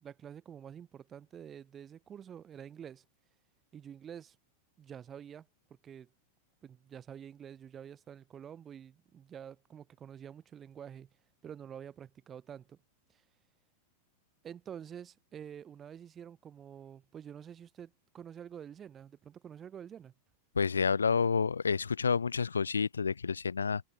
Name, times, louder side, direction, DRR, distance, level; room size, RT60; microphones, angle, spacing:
voice 1, 0.0-3.0 3.7-4.4 4.8-5.5 5.8-6.1 6.6-11.1 11.4-12.8 13.1-13.2 14.4-20.1, right 8 dB, 25° right, 1.3 m, -48 dB
voice 2, 20.5-23.8, left 5 dB, 75° left, 0.4 m, -29 dB
figure-of-eight pair, 90°, 0 cm